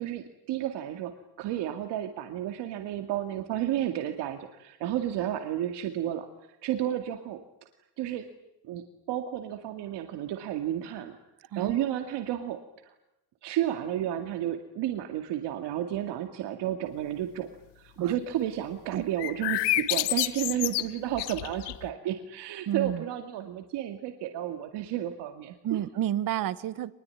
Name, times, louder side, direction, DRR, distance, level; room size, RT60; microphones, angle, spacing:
voice 1, 0.0-6.3 6.6-7.4 8.0-8.3 8.6-12.6 12.8-12.9 13.4-17.5 17.8-25.8, right 11 dB, 80° right, 6 dB, 2.2 m, -32 dB
sound 1, 19.2-21.9, left 17 dB, 80° left, 1.2 m, -29 dB
voice 2, 22.7-23.0 25.6-26.9, right 12 dB, 55° right, 15 dB, 1.3 m, -30 dB
25.5 x 21.5 x 9.7 m, 0.90 s
cardioid pair, 160°, 41 cm